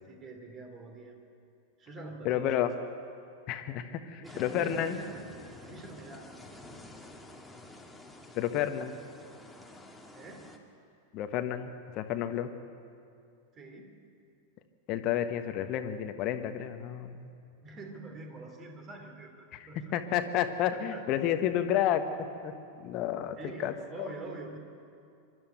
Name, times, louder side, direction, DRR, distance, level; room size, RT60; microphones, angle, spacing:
voice 1, 0.0-1.2 1.8-2.7 4.2-5.2 5.6-6.3 6.7-6.9 10.1-10.5 13.5-13.9 17.6-19.9 20.7-21.0 23.4-24.6, right 3 dB, 25° right, 3 dB, 3.3 m, -45 dB
voice 2, 2.2-2.7 3.5-5.0 8.3-9.0 11.1-12.5 14.9-17.3 19.5-22.0 22.4-22.5 22.8-24.1, left 10 dB, 40° left, 8 dB, 1.3 m, -31 dB
sound 1, 4.2-10.6, left 2 dB, 5° left, 1.9 m, -50 dB
24.5 x 12.5 x 9.2 m, 2.4 s
figure-of-eight pair, 90°, 0 cm